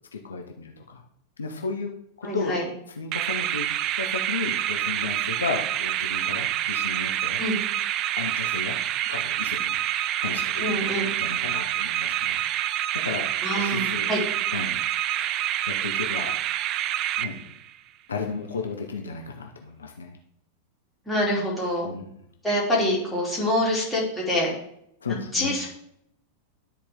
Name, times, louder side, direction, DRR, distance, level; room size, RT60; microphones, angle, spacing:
voice 1, 0.1-1.0 1.4-1.9 2.2-2.5 3.0-3.7 4.0-7.4 8.2-8.8 9.1-9.8 10.2-12.4 13.0-14.1 14.5-14.8 15.1-16.4 17.2-17.4 18.1-20.1 21.8-22.1 25.0-25.6, left 4 dB, 70° left, 2 dB, 0.9 m, -34 dB
voice 2, 2.2-2.7 7.4-7.6 10.6-11.1 13.4-14.2 21.0-21.9 22.4-24.5 25.3-25.7, left 1 dB, 5° left, -7 dB, 3.3 m, -25 dB
sound 1, 3.1-17.8, right 12 dB, 35° right, 0.3 m, -27 dB
12.5 x 4.3 x 3.6 m, 0.73 s
figure-of-eight pair, 90°, 0 cm